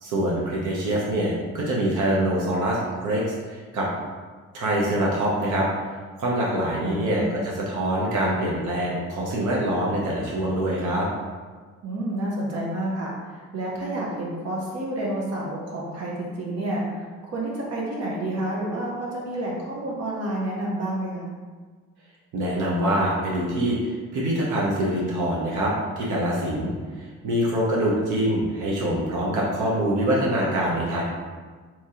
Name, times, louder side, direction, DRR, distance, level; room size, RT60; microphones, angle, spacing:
voice 1, 0.0-3.9 4.5-5.7 6.2-11.1 22.3-26.7 27.0-31.0, right 1 dB, 80° right, -4 dB, 0.8 m, -24 dB
voice 2, 6.8-7.3 11.8-21.3, right 1 dB, 55° right, -4 dB, 0.9 m, -29 dB
2.9 x 2.8 x 3.7 m, 1.5 s
cardioid pair, 90°, 30 cm